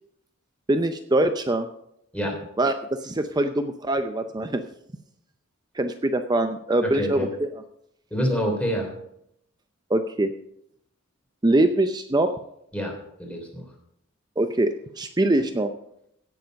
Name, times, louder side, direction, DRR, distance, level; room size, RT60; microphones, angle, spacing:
voice 1, 0.7-1.7 2.6-4.6 5.7-7.5 9.9-10.3 11.4-12.3 14.4-15.7, right 1 dB, 20° right, 7 dB, 0.6 m, -23 dB
voice 2, 6.8-7.3 8.1-8.9 12.7-12.9 13.2-13.6, equal, 5° left, 1 dB, 3.1 m, -26 dB
17.0 x 7.1 x 5.2 m, 0.75 s
head